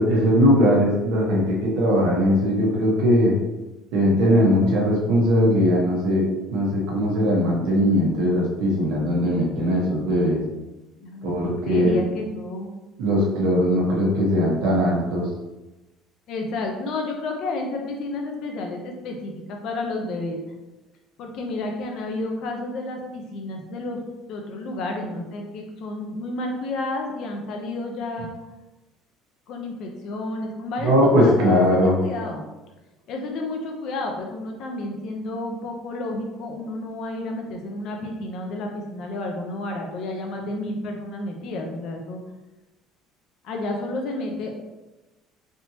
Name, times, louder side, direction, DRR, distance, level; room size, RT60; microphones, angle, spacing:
voice 1, 0.0-3.3 3.9-6.2 6.5-10.4 11.2-12.0 13.0-15.2 30.8-32.0, equal, 75° right, -3 dB, 1.1 m, -20 dB
voice 2, 11.0-12.7 16.3-20.4 21.2-24.0 24.3-28.3 29.5-32.5 33.1-42.2 43.4-44.6, left 2 dB, 50° left, 2 dB, 0.6 m, -31 dB
3.4 x 2.9 x 2.8 m, 1.1 s
cardioid pair, 150°, 0 cm